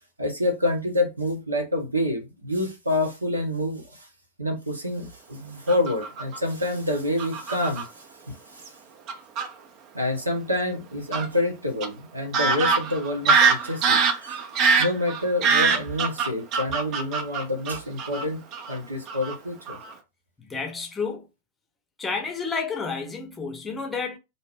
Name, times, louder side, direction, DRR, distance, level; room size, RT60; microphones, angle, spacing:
voice 1, 0.2-4.1 4.4-7.9 8.3-8.7 9.9-14.4 14.8-18.4 18.7-19.8, left 1 dB, 80° right, 0.8 m, -27 dB
Fowl / Bird vocalization bird call bird song, 5.7-6.4 7.2-7.8 8.7-8.8 9.1-9.5 11.1-11.3 11.8-11.9 12.3-18.2 18.5-18.8 19.1-19.3 19.7-19.9, right 5 dB, 40° right, 0.5 m, -23 dB
voice 2, 20.4-21.3 22.0-24.2, left 5 dB, 15° left, 0.7 m, -30 dB
2.6 x 2.0 x 3.3 m
figure-of-eight pair, 90°, 0 cm